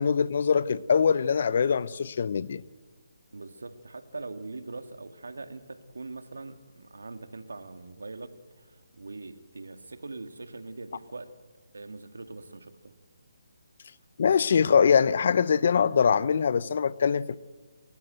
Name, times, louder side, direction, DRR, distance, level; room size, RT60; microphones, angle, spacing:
voice 1, 0.0-2.6 14.2-17.4, left 6 dB, 50° left, 0.8 m, -23 dB
voice 2, 3.3-8.3 8.6-11.3 11.7-12.9, right 3 dB, 80° right, 2.0 m, -42 dB
28.5 x 14.5 x 7.8 m
figure-of-eight pair, 155°, 0 cm